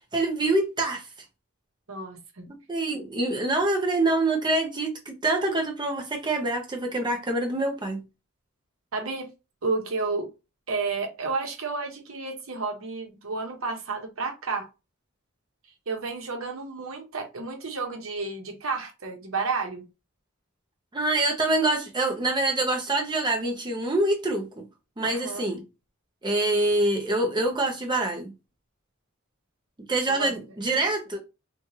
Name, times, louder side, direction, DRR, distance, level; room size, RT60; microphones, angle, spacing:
voice 1, 0.1-1.1 2.5-8.0 20.9-24.5 25.0-25.6 26.2-28.3 29.9-31.2, right 2 dB, 20° right, 0.6 m, -25 dB
voice 2, 1.9-2.5 8.9-9.3 9.6-10.3 10.7-14.7 15.9-19.8 25.0-25.5 30.2-30.3, right 4 dB, 70° right, 0.8 m, -31 dB
3.1 x 2.3 x 2.7 m
head